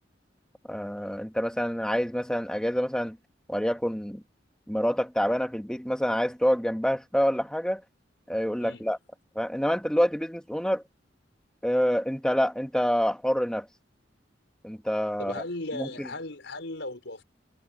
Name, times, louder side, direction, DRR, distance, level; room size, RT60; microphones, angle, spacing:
voice 1, 0.7-3.2 3.5-4.2 4.7-7.8 8.3-9.0 9.4-10.8 11.6-13.7 14.6-15.4 15.7-16.1, equal, 5° left, 2.0 m, -27 dB
voice 2, 15.2-17.2, left 2 dB, 75° left, 5.4 m, -37 dB
head